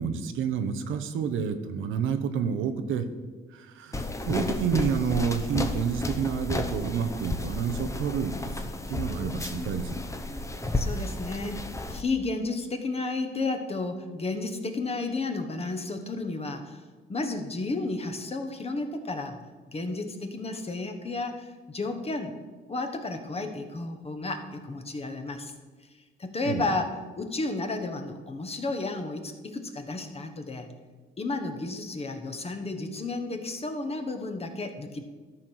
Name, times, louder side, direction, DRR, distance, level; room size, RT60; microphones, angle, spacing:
voice 1, 0.0-3.1 3.5-8.3 8.9-10.0 26.5-26.6, right 7 dB, 85° right, 8 dB, 0.9 m, -29 dB
sound 1, 3.9-12.0, left 2 dB, 15° left, 0.9 m, -32 dB
voice 2, 10.7-16.8 17.1-19.4 19.7-22.3 22.7-25.5 26.2-30.7 31.2-35.0, left 3 dB, 30° left, 6 dB, 1.2 m, -32 dB
13.0 x 4.4 x 6.5 m, 1.3 s
cardioid pair, 90°, 20 cm